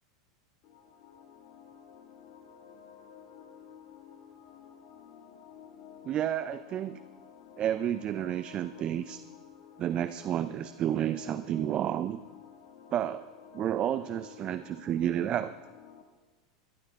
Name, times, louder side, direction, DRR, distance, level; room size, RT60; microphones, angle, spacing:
sound 1, 0.6-16.0, left 8 dB, 55° left, 2.2 m, -52 dB
voice 1, 6.0-7.0 7.6-9.2 9.8-12.2 12.9-15.5, right 11 dB, 40° right, 13 dB, 0.5 m, -31 dB
23.5 x 11.5 x 3.7 m, 1.3 s
hypercardioid pair, 95°, 3 cm